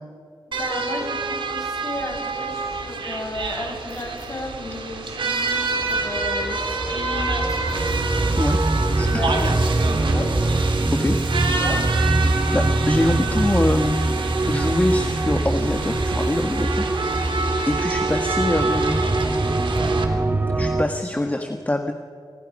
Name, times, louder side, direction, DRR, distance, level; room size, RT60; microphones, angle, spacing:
voice 1, 0.5-7.8 8.9-10.5 11.6-11.8, left 2 dB, 35° left, 0 dB, 7.9 m, -33 dB
sound 1, 0.5-20.0, right 4 dB, 75° right, 3.2 m, -28 dB
sound 2, 3.9-4.3 5.5-6.0 7.4-8.0 9.4-9.7 11.2-11.5, left 4 dB, 60° left, 6.6 m, -51 dB
sound 3, 5.8-20.8, right 2 dB, 25° right, 1.8 m, -23 dB
voice 2, 9.0-9.5 10.9-11.1 12.2-14.0 14.5-16.8 17.2-17.3 17.7-19.0 20.5-21.9, left 1 dB, 20° left, 4 dB, 1.5 m, -24 dB
29.5 x 27.5 x 5.5 m, 2.1 s
wide cardioid pair, 95°, 9 cm